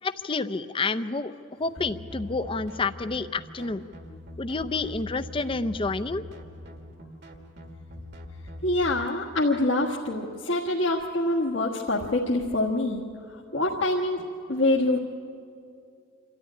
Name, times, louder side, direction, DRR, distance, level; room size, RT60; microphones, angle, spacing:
voice 1, 0.0-1.3 1.6-3.8 4.4-6.2, left 3 dB, 25° left, 12 dB, 0.6 m, -29 dB
sound 1, 1.8-9.1, left 1 dB, 60° right, 1.8 m, -42 dB
voice 2, 8.6-13.0 13.5-15.0, left 2 dB, 70° left, -3 dB, 1.4 m, -25 dB
26.5 x 13.0 x 10.0 m, 2.5 s
head